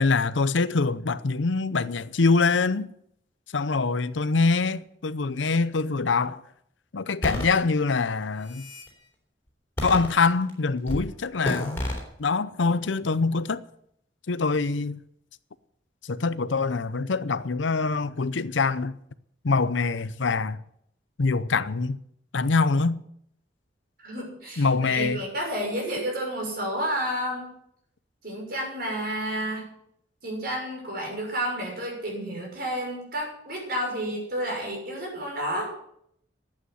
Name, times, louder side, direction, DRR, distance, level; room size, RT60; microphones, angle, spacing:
voice 1, 0.0-2.9 3.5-6.4 6.9-8.7 9.8-11.8 12.2-13.6 14.3-15.0 16.0-19.0 19.4-20.6 21.2-22.0 22.3-23.0 24.6-25.2, left 4 dB, 90° left, 0.7 m, -24 dB
sound 1, 7.2-7.5 8.2-8.9 9.8-10.5 10.9-11.1 11.4-12.0, left 1 dB, 15° left, 3.5 m, -30 dB
voice 2, 24.0-27.5 28.2-29.7 30.2-35.7, right 1 dB, 55° right, 6.4 m, -31 dB
11.5 x 8.8 x 9.4 m
head